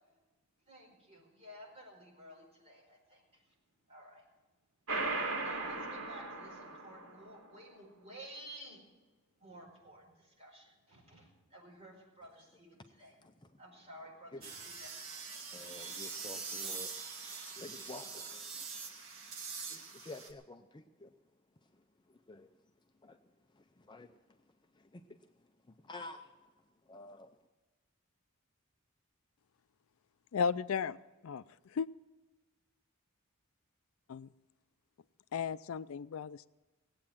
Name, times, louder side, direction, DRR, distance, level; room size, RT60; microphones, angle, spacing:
voice 1, 0.7-3.4 3.9-4.2 5.4-8.8 9.4-13.1 13.6-14.9, right 1 dB, 30° right, -2 dB, 5.1 m, -53 dB
sound 1, 4.9-7.3, right 3 dB, 85° right, 2.8 m, -37 dB
sound 2, 14.4-20.3, right 5 dB, 70° right, 1.8 m, -44 dB
voice 2, 15.4-16.9 17.6-18.9 19.7-21.1 22.1-22.5 23.0-23.2 23.5-24.2 24.7-25.2 25.8-26.3 26.9-27.3, left 2 dB, 20° left, 6 dB, 0.5 m, -50 dB
voice 3, 30.3-31.0 31.2-31.4 31.7-31.9 34.1-34.3 35.3-36.5, left 6 dB, 75° left, 16 dB, 0.4 m, -34 dB
18.5 x 8.6 x 7.4 m, 1.2 s
head